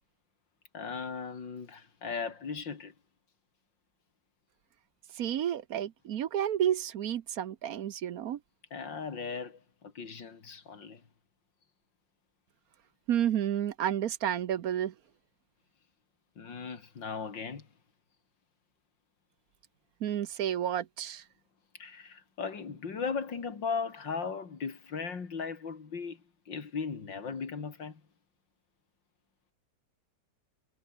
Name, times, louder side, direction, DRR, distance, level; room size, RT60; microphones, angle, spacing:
voice 1, 0.7-2.9 8.7-11.0 16.4-17.7 21.7-28.0, left 5 dB, 75° left, 3.3 m, -37 dB
voice 2, 5.2-8.4 13.1-14.9 20.0-21.2, right 10 dB, 60° right, 1.1 m, -31 dB
omnidirectional pair, 2.0 m